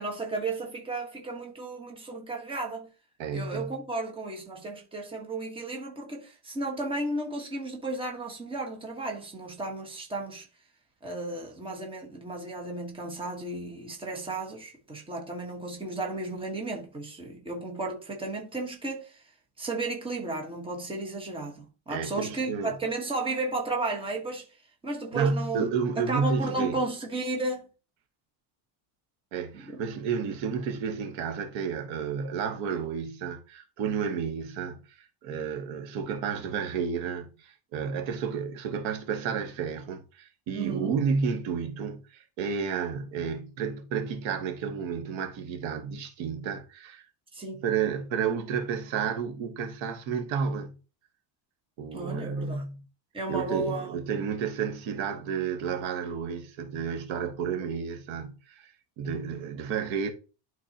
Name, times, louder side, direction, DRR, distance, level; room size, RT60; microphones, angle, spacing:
voice 1, 0.0-2.9 3.3-10.5 11.0-19.2 19.6-24.5 24.8-25.7 25.9-27.7 29.5-29.8 40.5-40.9 47.3-47.6 51.9-52.7 53.1-53.9, right 2 dB, 10° right, 1.2 m, -33 dB
voice 2, 3.2-3.7 21.9-22.7 25.1-26.8 29.3-47.0 47.6-50.8 51.8-52.8 53.3-60.1, right 6 dB, 70° right, 1.3 m, -31 dB
11.5 x 3.9 x 2.8 m
cardioid pair, 170°, 48 cm